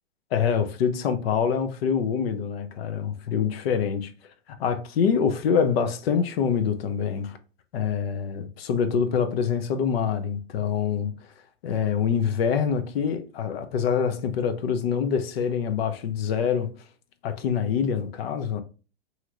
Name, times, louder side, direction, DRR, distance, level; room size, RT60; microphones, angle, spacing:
voice 1, 0.3-4.1 4.6-7.4 7.7-11.1 11.6-16.7 17.2-18.6, left 7 dB, 70° left, 0.6 m, -25 dB
2.8 x 2.5 x 2.9 m
hypercardioid pair, 125°, 31 cm